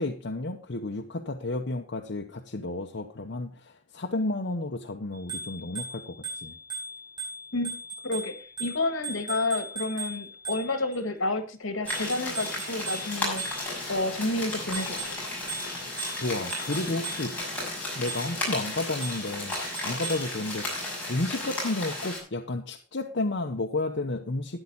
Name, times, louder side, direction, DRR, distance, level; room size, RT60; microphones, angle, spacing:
voice 1, 0.0-6.6 16.2-17.4 18.0-19.6 19.8-20.8 21.1-24.6, left 2 dB, 55° left, 2 dB, 0.9 m, -32 dB
Bicycle bell, 5.1-11.0 11.9-14.0 14.5-17.5 18.1-18.5 19.0-20.4, right 3 dB, 20° right, 5.3 m, -39 dB
voice 2, 8.0-8.3 8.6-15.2, left 2 dB, 75° left, 8 dB, 1.7 m, -30 dB
sound 1, 11.8-22.2, left 1 dB, 10° left, 6.2 m, -34 dB
13.0 x 9.8 x 3.9 m, 0.36 s
head